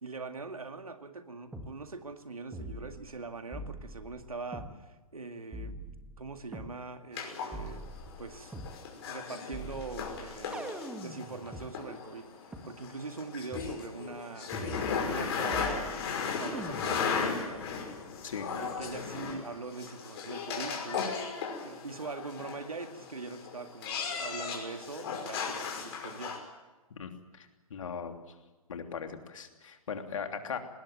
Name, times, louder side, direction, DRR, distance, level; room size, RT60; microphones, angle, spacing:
voice 1, 0.0-5.7 6.2-7.8 8.2-8.6 9.0-10.7 11.0-12.3 12.6-14.5 15.0-16.0 16.4-17.7 18.5-21.4 21.6-26.4, right 4 dB, 80° right, 7 dB, 2.2 m, -42 dB
sound 1, 1.5-1.7 2.5-3.2 3.5-4.7 5.5-6.7 7.5-8.8 9.5-11.7 12.5-12.6 13.5-13.8 14.5-15.2 15.5-16.2 16.5-17.2, right 1 dB, 5° right, 2.0 m, -43 dB
sound 2, 7.1-26.4, left 5 dB, 45° left, 5.7 m, -36 dB
voice 2, 27.0-28.1 28.7-30.6, left 6 dB, 60° left, 5 dB, 3.1 m, -39 dB
20.0 x 19.5 x 9.3 m, 1.2 s
figure-of-eight pair, 120°, 18 cm